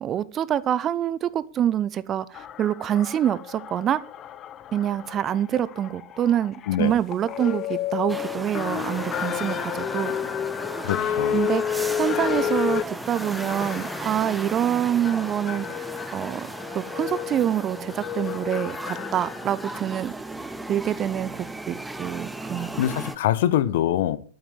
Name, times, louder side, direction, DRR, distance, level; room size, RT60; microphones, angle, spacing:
voice 1, 0.0-4.0 4.7-10.1 11.3-15.9 16.1-16.5 16.7-20.1 20.7-23.1, right 10 dB, 30° right, 0.7 m, -26 dB
sound 1, 2.3-19.8, left 9 dB, 30° left, 0.8 m, -31 dB
sound 2, 8.1-23.2, right 2 dB, 5° right, 1.0 m, -36 dB
voice 2, 10.8-11.4 22.8-24.2, left 12 dB, 55° left, 1.1 m, -24 dB
12.0 x 9.1 x 6.9 m
figure-of-eight pair, 90°, 0 cm